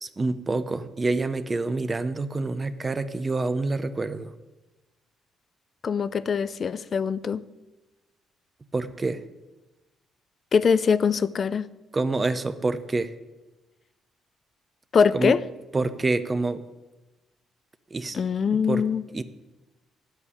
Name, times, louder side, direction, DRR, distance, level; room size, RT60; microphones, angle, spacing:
voice 1, 0.0-4.3 8.7-9.2 11.9-13.1 15.1-15.3 15.7-16.6 17.9-18.2 18.7-18.8 19.1-19.2, right 3 dB, 25° right, 11 dB, 0.7 m, -27 dB
voice 2, 5.8-7.4 10.5-11.7 14.9-15.4 18.1-19.0, left 6 dB, 45° left, 17 dB, 0.5 m, -23 dB
9.4 x 8.1 x 8.4 m, 1.1 s
cardioid pair, 90°, 0 cm